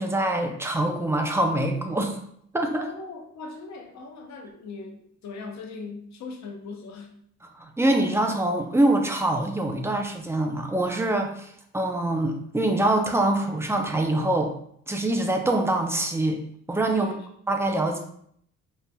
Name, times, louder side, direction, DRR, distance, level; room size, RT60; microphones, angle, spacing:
voice 1, 0.0-2.2 2.5-2.9 7.5-11.5 11.7-14.5 14.9-16.4 16.7-17.1 17.5-18.0, right 1 dB, 10° right, 3 dB, 0.4 m, -24 dB
voice 2, 2.7-7.2 16.9-17.3, left 4 dB, 65° left, 2 dB, 0.8 m, -39 dB
3.7 x 2.7 x 2.2 m, 0.67 s
cardioid pair, 90°, 30 cm